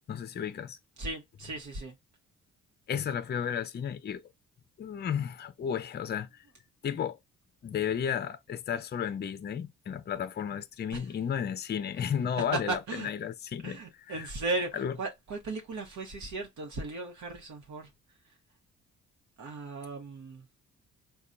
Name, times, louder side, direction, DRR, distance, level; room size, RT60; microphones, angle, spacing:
voice 1, 0.1-0.8 2.9-4.2 4.8-6.5 6.8-7.2 7.6-14.3 14.7-15.0, left 8 dB, 35° left, 0.5 m, -33 dB
voice 2, 1.0-1.9 10.9-11.0 12.7-13.1 13.6-17.9 19.4-20.4, right 3 dB, 70° right, 0.9 m, -36 dB
4.1 x 2.3 x 2.5 m
cardioid pair, 90°, 30 cm